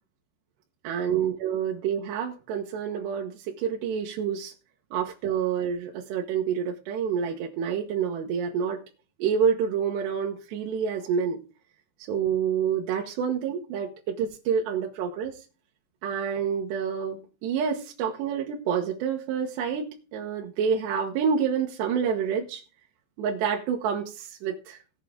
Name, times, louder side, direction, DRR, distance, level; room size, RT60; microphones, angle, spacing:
voice 1, 0.8-4.5 4.9-8.8 9.2-11.4 12.1-15.4 16.0-22.6 23.2-24.8, right 7 dB, 70° right, 1 dB, 3.0 m, -28 dB
18.0 x 7.4 x 3.7 m, 0.34 s
omnidirectional pair, 5.6 m